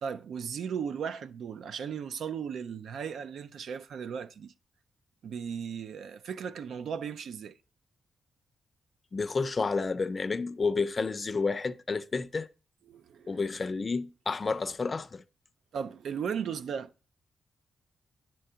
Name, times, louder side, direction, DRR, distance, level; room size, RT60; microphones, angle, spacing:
voice 1, 0.0-4.5 5.2-7.6 12.9-13.4 15.7-17.1, right 7 dB, 70° right, 0.4 m, -36 dB
voice 2, 9.1-12.5 13.3-15.2, left 4 dB, 30° left, 0.5 m, -30 dB
9.9 x 3.8 x 5.5 m
cardioid pair, 115°, 0 cm